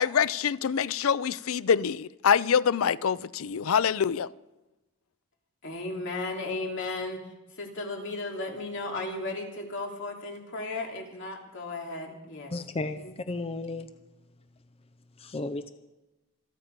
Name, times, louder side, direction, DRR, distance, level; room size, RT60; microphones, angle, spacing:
voice 1, 0.0-4.3, left 7 dB, 85° left, 0.5 m, -25 dB
voice 2, 5.6-12.5 12.8-13.1, left 2 dB, 65° left, 2.8 m, -35 dB
voice 3, 12.5-13.9 15.2-15.7, left 2 dB, 30° left, 0.6 m, -34 dB
27.0 x 9.2 x 5.2 m
head